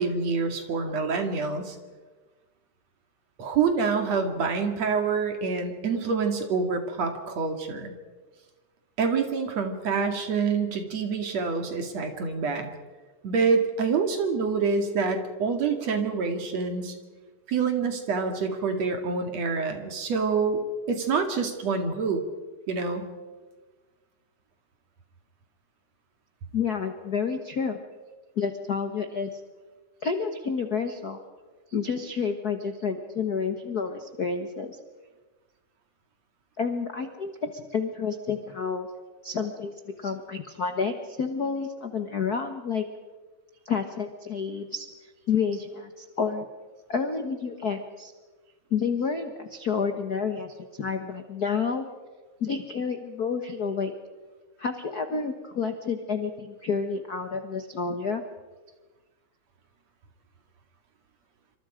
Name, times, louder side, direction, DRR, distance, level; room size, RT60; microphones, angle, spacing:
voice 1, 0.0-1.8 3.4-7.9 9.0-12.7 13.2-16.9 17.5-20.6 20.9-22.2 22.7-23.0, right 5 dB, 55° right, 5 dB, 3.3 m, -26 dB
voice 2, 26.5-27.8 28.4-29.4 30.0-31.2 31.7-34.8 36.6-38.9 39.2-39.7 40.0-42.8 43.6-46.5 46.9-48.1 48.7-50.5 50.8-51.8 52.4-53.9 54.6-58.2, left 5 dB, 55° left, 7 dB, 1.0 m, -29 dB
27.5 x 25.5 x 5.1 m, 1.3 s
omnidirectional pair, 3.7 m